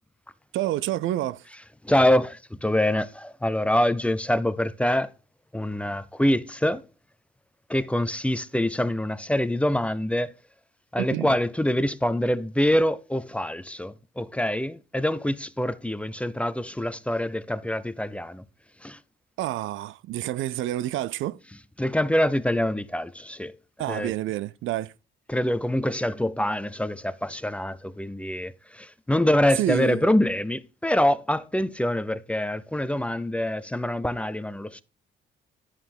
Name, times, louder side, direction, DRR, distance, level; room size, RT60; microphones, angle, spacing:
voice 1, 0.5-1.5 11.0-11.4 19.4-21.4 23.8-24.9 29.6-30.0, right 14 dB, 80° right, 0.4 m, -28 dB
voice 2, 1.8-5.1 5.5-6.8 7.7-10.3 10.9-18.4 18.8-19.0 21.8-23.6 23.8-24.1 25.3-34.8, left 1 dB, 5° left, 0.6 m, -25 dB
11.0 x 5.4 x 4.4 m
cardioid pair, 90°, 20 cm